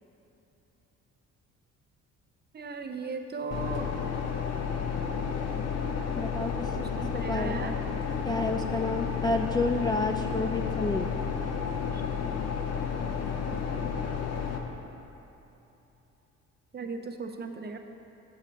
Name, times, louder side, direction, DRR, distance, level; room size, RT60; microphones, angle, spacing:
voice 1, 2.5-3.9 6.7-7.8 13.4-13.6 16.7-17.8, right 4 dB, 35° right, 5 dB, 0.6 m, -37 dB
sound 1, 3.5-14.6, left 6 dB, 55° left, 0.7 m, -31 dB
voice 2, 6.2-6.7 7.1-7.8 8.3-11.1, left 2 dB, 15° left, 3 dB, 0.3 m, -30 dB
7.2 x 6.5 x 4.6 m, 3.0 s
cardioid pair, 90°, 30 cm